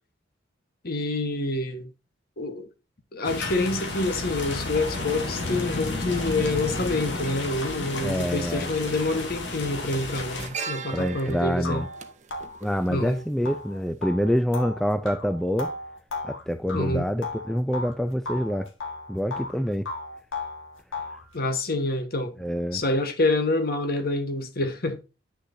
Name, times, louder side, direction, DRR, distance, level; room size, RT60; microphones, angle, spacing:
voice 1, 0.8-1.9 2.4-2.7 3.1-11.8 12.9-13.2 16.7-17.1 21.3-22.3 22.7-25.0, left 2 dB, 50° left, 1.3 m, -27 dB
sound 1, 3.2-10.5, left 2 dB, 65° left, 2.3 m, -31 dB
voice 2, 8.0-8.7 10.9-11.9 12.6-15.7 16.2-18.7 19.1-19.9 22.4-22.8, equal, ahead, 0.3 m, -26 dB
sound 2, 8.7-9.0 9.3-13.6 13.8-14.0, right 5 dB, 40° right, 0.9 m, -39 dB
sound 3, 11.1-11.2 11.6-18.0 18.3-19.6 19.9-21.3, left 2 dB, 90° left, 1.7 m, -35 dB
9.7 x 6.5 x 2.7 m
head